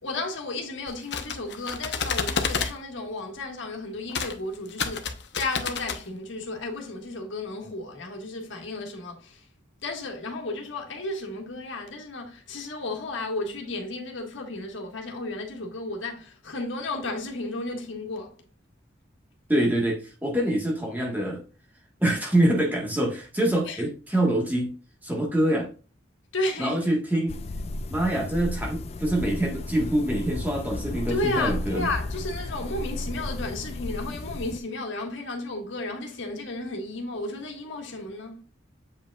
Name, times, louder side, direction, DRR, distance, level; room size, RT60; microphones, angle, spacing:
voice 1, 0.0-9.5 9.8-18.3 23.6-23.8 26.3-26.8 31.1-38.4, left 2 dB, 75° left, 1.6 m, -33 dB
sound 1, 0.9-2.7 4.1-4.3 4.7-6.0, left 5 dB, 60° left, 0.8 m, -29 dB
voice 2, 19.5-21.4 22.0-24.7 25.0-25.7 26.6-27.4 27.9-31.9, right 1 dB, 10° right, 1.4 m, -25 dB
sound 2, 27.3-34.6, left 2 dB, 30° left, 0.3 m, -34 dB
7.8 x 5.1 x 2.3 m
head